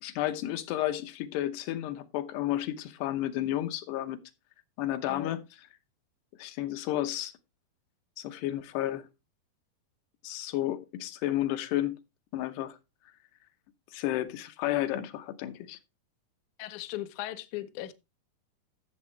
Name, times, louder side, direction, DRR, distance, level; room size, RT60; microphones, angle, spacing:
voice 1, 0.0-4.2 4.8-5.4 6.4-7.3 8.2-9.1 10.2-12.0 12.3-12.8 13.9-15.8, left 13 dB, 85° left, 3.0 m, -32 dB
voice 2, 16.6-17.9, left 14 dB, 70° left, 1.9 m, -38 dB
14.5 x 7.5 x 3.2 m
omnidirectional pair, 4.6 m